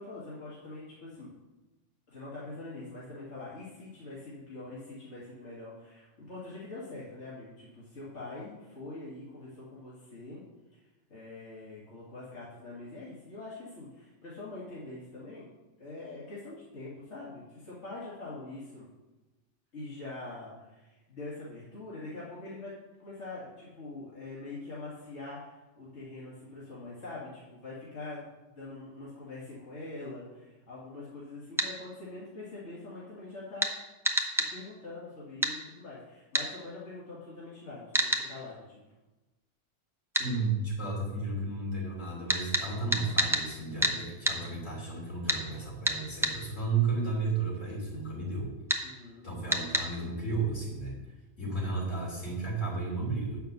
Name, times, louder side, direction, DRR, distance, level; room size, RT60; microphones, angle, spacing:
voice 1, 0.0-1.3 2.1-10.4 10.7-10.8 11.1-15.5 15.8-18.9 19.7-22.7 23.0-28.3 28.5-33.7 34.4-38.8 48.8-49.3, left 2 dB, 65° left, -8 dB, 2.4 m, -44 dB
sound 1, 31.6-31.7 33.6-33.7 34.0-34.5 35.4-35.6 36.3-36.5 37.9-38.3 40.1-40.3 42.3-43.5 43.8-44.0 44.2-44.4 45.3-45.4 45.8-46.4 48.7-48.8 49.5-49.9, right 1 dB, 5° right, 0.7 m, -27 dB
voice 2, 40.2-48.5 49.2-50.9 51.4-53.4, right 3 dB, 85° left, -4 dB, 3.6 m, -33 dB
9.1 x 5.8 x 6.7 m, 1.1 s
omnidirectional pair, 1.3 m